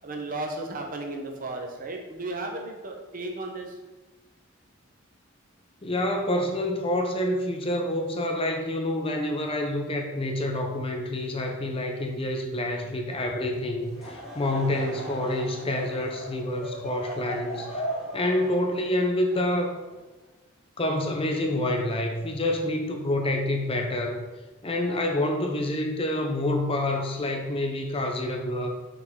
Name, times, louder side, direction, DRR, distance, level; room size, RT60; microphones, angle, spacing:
voice 1, 0.0-3.8, right 2 dB, 40° right, 2 dB, 0.9 m, -34 dB
voice 2, 5.8-17.9 18.1-19.8 20.8-24.2 24.6-28.7, left 1 dB, 25° left, 3 dB, 0.6 m, -27 dB
Laughter / Crowd, 13.8-20.2, equal, 5° right, 1.9 m, -38 dB
6.1 x 5.5 x 3.7 m, 1.1 s
head